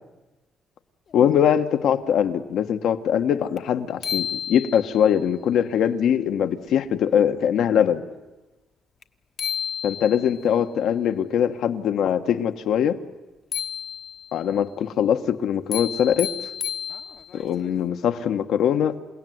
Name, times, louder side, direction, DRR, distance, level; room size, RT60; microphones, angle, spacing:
voice 1, 1.1-8.0 9.8-13.0 14.3-16.3 17.3-19.0, left 9 dB, 75° left, 8 dB, 1.3 m, -22 dB
sound 1, 3.6-3.7 4.0-5.1 9.0-9.1 9.4-10.4 13.5-14.4 15.7-17.4, left 8 dB, 55° left, 1.1 m, -31 dB
28.5 x 17.0 x 9.4 m, 1.1 s
cardioid pair, 90°, 0 cm